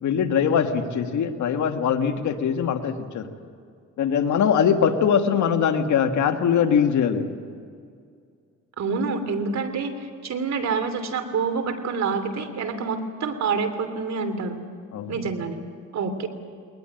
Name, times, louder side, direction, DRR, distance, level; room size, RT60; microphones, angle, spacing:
voice 1, 0.0-3.3 4.0-7.3 14.9-15.3, left 7 dB, 75° left, 6 dB, 1.9 m, -22 dB
voice 2, 8.8-14.6 15.1-15.6 15.9-16.3, right 5 dB, 60° right, 9 dB, 3.0 m, -27 dB
21.5 x 20.0 x 9.2 m, 2.2 s
cardioid pair, 90°, 30 cm